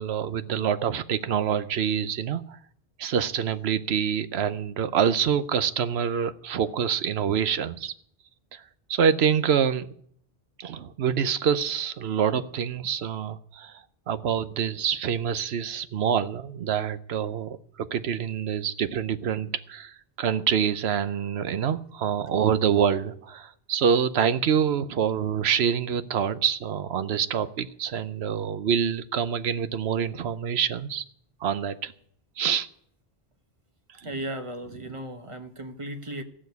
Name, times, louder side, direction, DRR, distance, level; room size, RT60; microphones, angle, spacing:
voice 1, 0.0-2.6 3.0-7.9 8.5-8.6 8.9-9.9 10.6-31.0 31.4-31.9 32.4-32.7 34.0-34.3 34.7-34.9, right 8 dB, 80° right, 13 dB, 1.0 m, -26 dB
voice 2, 34.0-36.2, right 1 dB, 30° right, 7 dB, 1.1 m, -36 dB
14.5 x 6.3 x 9.3 m, 0.64 s
omnidirectional pair, 1.1 m